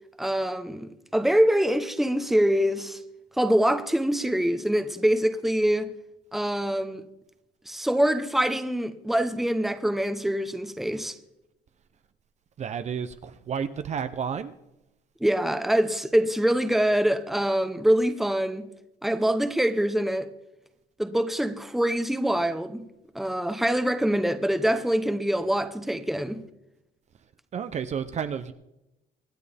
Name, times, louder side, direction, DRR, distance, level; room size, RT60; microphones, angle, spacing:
voice 1, 0.2-3.0 3.4-5.9 6.3-7.0 7.7-11.2 15.2-18.7 19.0-20.3 21.0-22.8 23.1-26.4, right 1 dB, ahead, 1.0 m, -24 dB
voice 2, 12.6-14.5 27.5-28.5, right 7 dB, 40° right, 0.7 m, -31 dB
25.0 x 9.3 x 3.5 m
cardioid pair, 110°, 17 cm